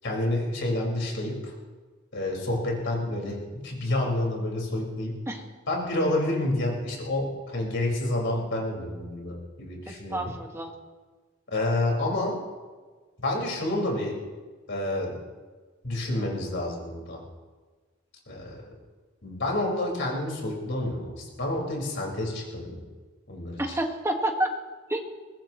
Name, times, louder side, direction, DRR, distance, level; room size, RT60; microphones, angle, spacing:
voice 1, 0.0-1.5 2.1-5.2 5.7-10.3 11.5-12.4 13.2-14.2 14.7-15.2 15.8-17.2 18.3-18.6 19.2-22.8 23.3-23.8, left 1 dB, 60° left, -2 dB, 5.2 m, -29 dB
voice 2, 9.9-10.7 23.6-24.5 24.9-25.1, right 1 dB, 15° right, 2 dB, 1.7 m, -29 dB
23.0 x 19.0 x 3.1 m, 1.4 s
head